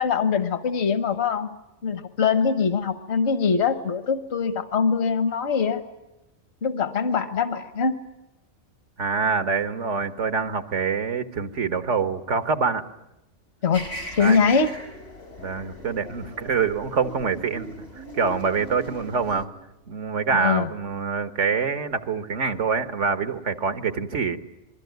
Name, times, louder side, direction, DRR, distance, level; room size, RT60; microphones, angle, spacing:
voice 1, 0.0-1.5 1.8-5.8 6.6-8.0 13.6-13.9 14.2-14.7 20.3-20.7, left 6 dB, 65° left, 9 dB, 1.5 m, -23 dB
voice 2, 9.0-12.8 14.2-14.4 15.4-19.5 19.9-24.4, right 5 dB, 90° right, 9 dB, 1.7 m, -25 dB
sound 1, 13.7-19.5, right 1 dB, 90° left, 3.4 m, -39 dB
27.5 x 21.5 x 9.3 m, 0.95 s
omnidirectional pair, 1.2 m